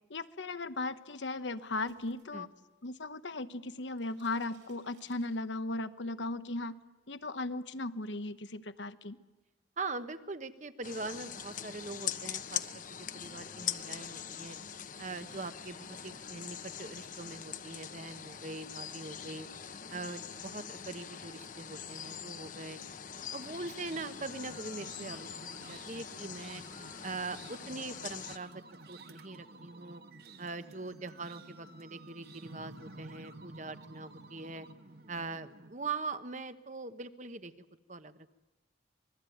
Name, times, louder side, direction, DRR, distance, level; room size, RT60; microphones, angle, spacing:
voice 1, 0.1-2.5 2.8-6.8 7.1-9.2, left 2 dB, 85° left, 11 dB, 1.1 m, -37 dB
sound 1, 1.4-3.1 3.4-5.8, right 4 dB, 90° right, 6.6 m, -66 dB
voice 2, 9.8-14.6 15.0-19.5 19.9-22.8 23.3-26.6 27.0-28.6 28.9-30.0 30.4-34.7 35.1-37.5 37.9-38.3, right 3 dB, 40° right, 11 dB, 1.1 m, -42 dB
sound 2, 10.8-28.4, left 8 dB, 45° left, 1.0 m, -43 dB
sound 3, 23.6-35.7, right 2 dB, 60° right, 1.5 m, -52 dB
26.0 x 21.0 x 9.3 m, 1.1 s
head